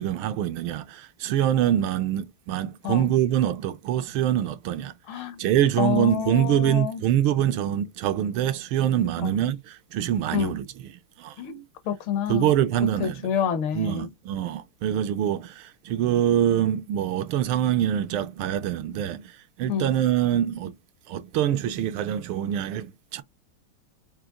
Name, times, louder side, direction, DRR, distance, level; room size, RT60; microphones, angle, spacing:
voice 1, 0.0-10.9 11.2-11.4 12.3-13.3 13.7-20.8 21.1-23.2, right 11 dB, 85° right, 1.5 m, -25 dB
voice 2, 5.1-5.4 5.8-7.0 9.2-9.4 10.3-10.5 11.4-12.5 13.0-14.1 19.7-19.9, left 8 dB, 75° left, 1.7 m, -28 dB
5.0 x 2.8 x 3.7 m
omnidirectional pair, 2.3 m